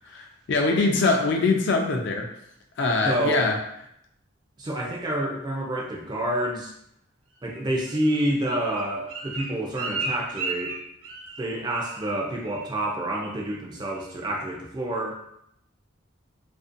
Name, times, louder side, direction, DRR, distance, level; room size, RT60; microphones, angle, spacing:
voice 1, 0.0-2.3 2.8-3.5 9.4-9.5, left 3 dB, 55° left, 2 dB, 0.4 m, -23 dB
voice 2, 3.0-3.5 4.6-6.7 7.4-10.8 11.4-15.2, right 1 dB, 20° right, -1 dB, 0.3 m, -28 dB
Bird, 7.5-11.5 11.8-12.2 12.4-12.8 13.1-13.5 13.9-14.0, right 3 dB, 75° right, 0.5 m, -35 dB
2.5 x 2.1 x 2.5 m, 0.74 s
head